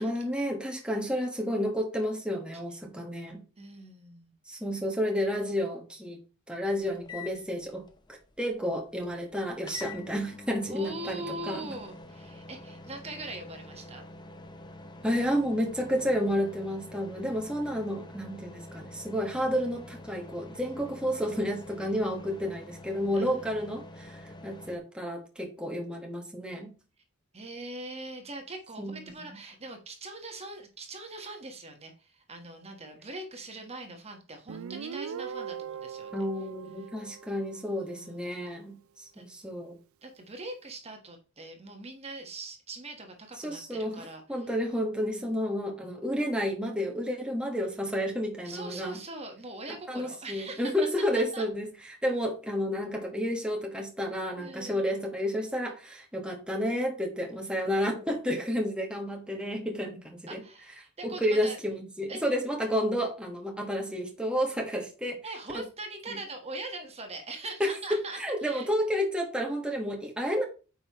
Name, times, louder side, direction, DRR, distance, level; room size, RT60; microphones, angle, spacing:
voice 1, 0.0-3.4 4.5-6.2 6.5-11.8 15.0-26.7 28.8-29.4 36.1-39.8 43.4-49.0 49.9-51.7 52.0-60.4 61.0-65.2 65.5-65.6 66.1-66.2 67.6-67.7 68.1-70.4, equal, 5° right, 1 dB, 1.4 m, -31 dB
voice 2, 3.6-4.6 10.7-14.0 23.1-23.5 27.3-36.1 37.5-38.3 39.1-39.2 40.0-44.5 45.1-45.6 48.4-50.7 51.1-51.4 54.4-54.9 60.3-61.6 62.1-62.2 65.2-68.7, right 2 dB, 30° right, 4 dB, 1.4 m, -42 dB
sound 1, 6.7-24.8, left 2 dB, 20° left, 0.8 m, -47 dB
Guitar, 34.5-37.9, right 7 dB, 75° right, 0.4 m, -40 dB
8.9 x 5.5 x 3.0 m, 0.34 s
head